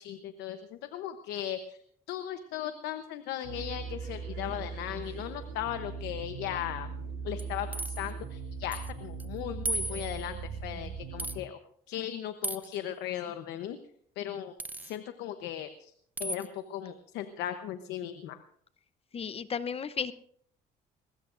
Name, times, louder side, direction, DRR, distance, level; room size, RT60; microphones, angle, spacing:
voice 1, 0.0-1.8 2.1-6.9 7.2-11.6 11.9-13.8 14.2-14.5 14.8-15.9 16.2-18.4, left 11 dB, 85° left, 9 dB, 0.9 m, -37 dB
sound 1, 3.4-11.4, right 5 dB, 85° right, 3.4 m, -39 dB
sound 2, 7.4-8.1 8.7-8.9 9.2-9.3 9.7-10.3 11.2-11.4 12.4-12.8 14.6-15.0 16.2-16.5, right 1 dB, 10° right, 0.7 m, -35 dB
voice 2, 19.1-20.1, left 6 dB, 35° left, 14 dB, 0.8 m, -34 dB
21.5 x 20.5 x 2.6 m, 0.65 s
cardioid pair, 110°, 17 cm